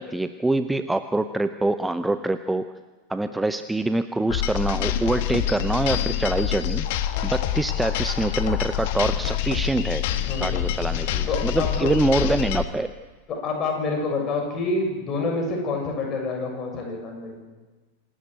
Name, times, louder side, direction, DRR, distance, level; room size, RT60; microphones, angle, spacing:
voice 1, 0.0-2.7 3.1-10.0 10.4-12.9, right 2 dB, 5° right, 11 dB, 0.7 m, -25 dB
sound 1, 4.3-12.6, left 11 dB, 50° left, 1.4 m, -26 dB
voice 2, 11.3-11.9 13.3-17.4, left 3 dB, 30° left, 1 dB, 7.2 m, -27 dB
26.5 x 13.0 x 9.3 m, 1.3 s
figure-of-eight pair, 90°, 0 cm